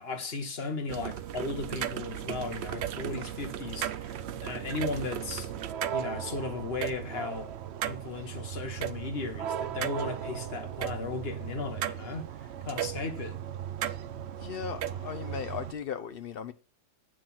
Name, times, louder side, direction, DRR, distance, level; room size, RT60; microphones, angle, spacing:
voice 1, 0.0-5.5 5.9-7.5 7.9-13.4, left 3 dB, 40° left, 1.4 m, -36 dB
sound 1, 0.9-15.7, right 10 dB, 70° right, 0.6 m, -36 dB
voice 2, 14.4-16.5, left 7 dB, 90° left, 0.5 m, -37 dB
8.9 x 6.2 x 5.8 m
omnidirectional pair, 1.7 m